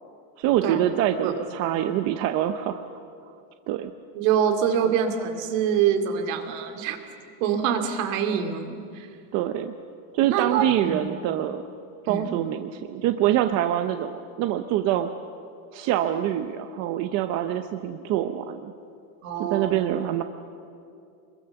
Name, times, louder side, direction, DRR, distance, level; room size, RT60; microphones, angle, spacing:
voice 1, 0.4-2.8 3.7-3.9 4.8-4.9 9.3-9.7 10.1-11.6 12.0-15.1 15.7-18.7 19.4-20.2, right 12 dB, 35° right, 8 dB, 0.7 m, -25 dB
voice 2, 4.1-7.0 7.4-9.1 10.3-11.0 12.1-12.3 19.2-19.9, right 8 dB, 60° right, 6 dB, 2.6 m, -25 dB
25.5 x 22.0 x 7.0 m, 2.5 s
cardioid pair, 170°, 45 cm